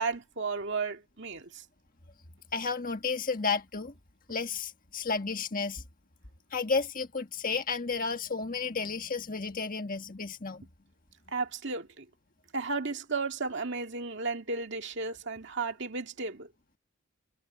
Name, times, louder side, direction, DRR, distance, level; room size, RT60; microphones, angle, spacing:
voice 1, 0.0-1.6 11.3-12.1 12.5-16.5, right 4 dB, 55° right, 2.1 m, -34 dB
voice 2, 2.5-3.9 4.3-5.8 6.5-10.7, left 4 dB, 40° left, 1.6 m, -32 dB
head